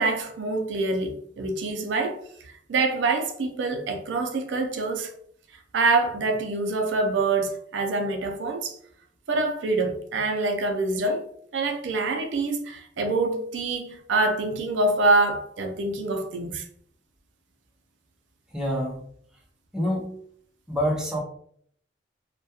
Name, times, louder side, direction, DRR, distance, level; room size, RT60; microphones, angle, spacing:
voice 1, 0.0-5.1 5.7-8.8 9.3-11.2 11.5-16.7, right 3 dB, 85° right, 0.4 m, -25 dB
voice 2, 18.5-19.0 19.7-20.2 20.7-21.2, equal, 5° right, 0.5 m, -26 dB
2.2 x 2.2 x 2.7 m
head